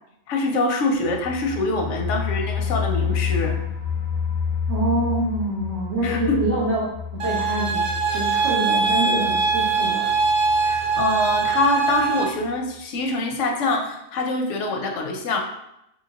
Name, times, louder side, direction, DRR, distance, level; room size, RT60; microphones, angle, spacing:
voice 1, 0.3-3.6 6.0-6.4 10.6-15.4, left 2 dB, 90° left, 2 dB, 0.9 m, -24 dB
sound 1, 1.0-11.7 12.0-12.1 12.4-12.5, left 7 dB, 60° left, 0.6 m, -29 dB
voice 2, 4.7-6.8 7.1-10.1, right 2 dB, 75° right, -6 dB, 1.5 m, -26 dB
sound 2, 7.2-12.2, right 5 dB, 60° right, 0.7 m, -22 dB
3.5 x 2.8 x 2.8 m, 0.82 s
omnidirectional pair, 1.2 m